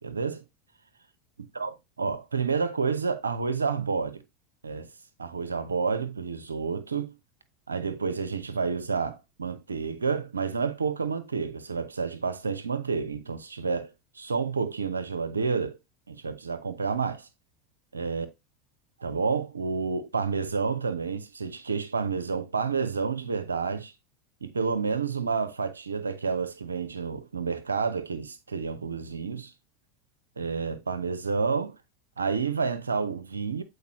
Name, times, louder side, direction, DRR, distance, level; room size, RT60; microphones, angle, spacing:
voice 1, 0.0-0.4 1.5-4.2 4.6-4.9 5.2-7.1 7.7-15.8 16.1-17.3 17.9-18.3 19.0-23.9 24.4-29.5 30.4-31.8 32.2-33.6, right 5 dB, 85° right, 0.9 m, -29 dB
8.2 x 4.7 x 3.1 m
figure-of-eight pair, 80°, 0 cm